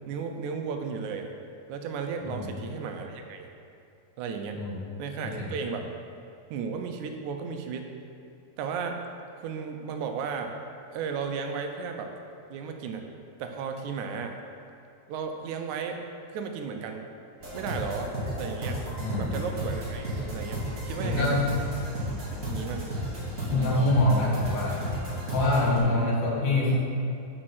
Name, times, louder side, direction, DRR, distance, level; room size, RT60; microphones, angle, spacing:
voice 1, 0.1-1.3 1.7-3.5 4.2-4.6 5.0-5.9 6.5-7.9 8.6-9.0 9.4-10.5 10.9-12.1 12.5-13.1 13.4-14.4 15.1-16.0 16.3-17.1 17.5-18.8 19.2-21.4 22.5-22.9 23.5-23.9 25.8-26.1, right 6 dB, 80° right, 5 dB, 1.8 m, -34 dB
voice 2, 2.2-2.6 4.5-4.8 5.2-5.6 19.0-19.4 21.0-21.5 23.5-24.8 25.3-26.7, left 2 dB, 70° left, -4 dB, 2.8 m, -25 dB
sound 1, 17.4-25.8, right 1 dB, 50° right, 0.9 m, -33 dB
6.5 x 5.1 x 5.8 m, 2.6 s
omnidirectional pair, 3.7 m